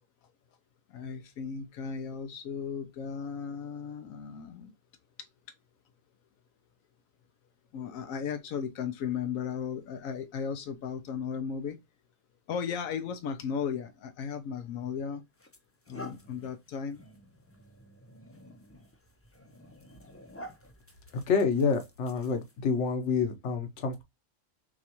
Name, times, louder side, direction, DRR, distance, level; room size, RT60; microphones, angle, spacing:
voice 1, 0.9-4.7 5.2-5.3 7.7-11.8 12.5-15.2 15.9-17.0, left 6 dB, 85° left, 1.1 m, -35 dB
sound 1, 14.6-14.8 15.3-22.7, left 1 dB, 15° left, 0.5 m, -50 dB
voice 2, 21.3-24.0, left 5 dB, 65° left, 1.1 m, -28 dB
6.1 x 2.4 x 2.9 m
omnidirectional pair, 1.4 m